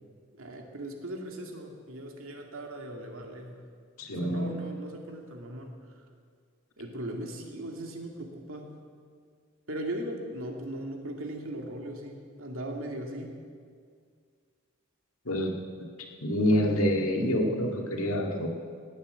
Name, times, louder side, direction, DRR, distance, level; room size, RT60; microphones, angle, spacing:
voice 1, 0.3-3.6 4.2-5.7 6.8-8.7 9.7-13.4, right 1 dB, 75° right, 2 dB, 2.3 m, -38 dB
voice 2, 4.0-4.6 15.3-15.5 15.8-15.9 16.2-18.5, equal, 90° left, 1 dB, 2.1 m, -27 dB
18.0 x 9.0 x 7.9 m, 2.1 s
head